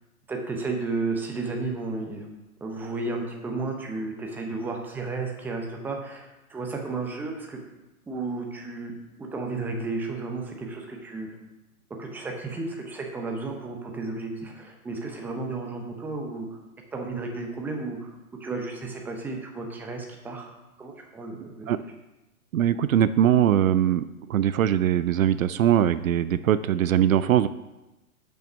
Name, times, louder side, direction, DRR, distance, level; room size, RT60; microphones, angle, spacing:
voice 1, 0.3-2.3 2.6-7.6 8.1-8.9 9.2-11.3 12.0-16.5 16.9-18.1 18.4-20.5 20.8-21.7, right 3 dB, 5° right, 1 dB, 0.6 m, -33 dB
voice 2, 22.5-27.5, right 10 dB, 65° right, 14 dB, 0.5 m, -21 dB
6.4 x 5.4 x 6.0 m, 0.99 s
hypercardioid pair, 125°, 44 cm